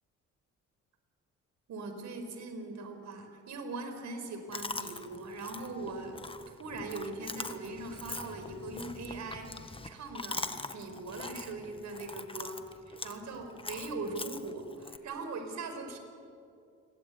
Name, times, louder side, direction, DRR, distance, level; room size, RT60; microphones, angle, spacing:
voice 1, 1.7-9.5 9.8-16.0, right 3 dB, 65° right, 6 dB, 5.0 m, -40 dB
Chewing mastication, 4.5-15.0, left 3 dB, 20° left, 1.5 m, -43 dB
29.0 x 21.0 x 9.5 m, 2.5 s
cardioid pair, 90°, 30 cm